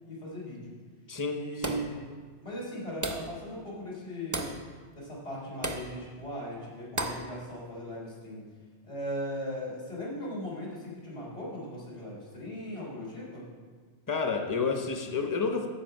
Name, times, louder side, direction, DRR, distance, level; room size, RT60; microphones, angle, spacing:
voice 1, 0.1-0.7 1.3-2.1 2.4-4.6 5.0-8.5 8.8-13.5, equal, 80° left, -6 dB, 3.7 m, -38 dB
voice 2, 1.1-1.8 14.1-15.7, left 5 dB, 20° left, 4 dB, 0.7 m, -30 dB
sound 1, 1.6-2.0 3.0-3.4 4.3-4.6 5.6-5.9 7.0-7.3, right 1 dB, 25° right, 0.5 m, -33 dB
14.0 x 5.1 x 5.5 m, 1.6 s
omnidirectional pair, 1.2 m